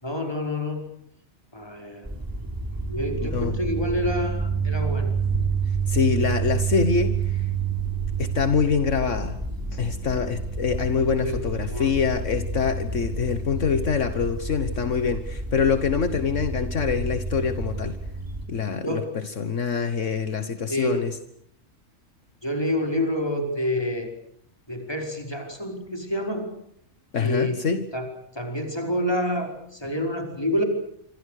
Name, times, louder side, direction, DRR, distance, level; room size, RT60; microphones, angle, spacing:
voice 1, 0.0-0.8 1.5-2.1 2.9-5.1 11.2-11.4 11.7-11.9 18.8-19.1 20.7-21.0 22.4-24.1 24.7-26.5 27.2-27.6 27.9-28.1 28.3-30.6, left 1 dB, 20° left, 3 dB, 5.1 m, -28 dB
sound 1, 2.0-18.5, right 5 dB, 15° right, 4.0 m, -29 dB
voice 2, 3.2-3.6 5.9-7.5 8.2-9.4 9.7-18.0 18.5-21.2 27.1-27.9, left 6 dB, 70° left, 10 dB, 1.7 m, -25 dB
sound 2, 5.1-17.3, right 1 dB, 65° right, 6.5 m, -40 dB
27.0 x 25.5 x 6.6 m, 0.69 s
omnidirectional pair, 1.3 m